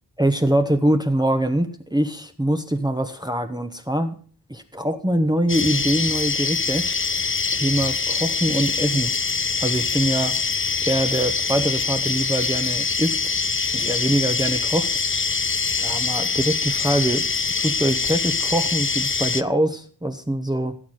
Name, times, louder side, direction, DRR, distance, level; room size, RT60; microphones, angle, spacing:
voice 1, 0.2-4.1 4.5-6.9 7.5-9.1 9.6-10.4 10.8-13.2 13.7-14.9 15.8-17.3 17.6-20.8, right 1 dB, 10° right, 6 dB, 1.1 m, -23 dB
sound 1, 5.5-19.4, left 5 dB, 30° left, 0.7 m, -24 dB
16.0 x 7.2 x 6.5 m, 0.43 s
wide cardioid pair, 80°, 42 cm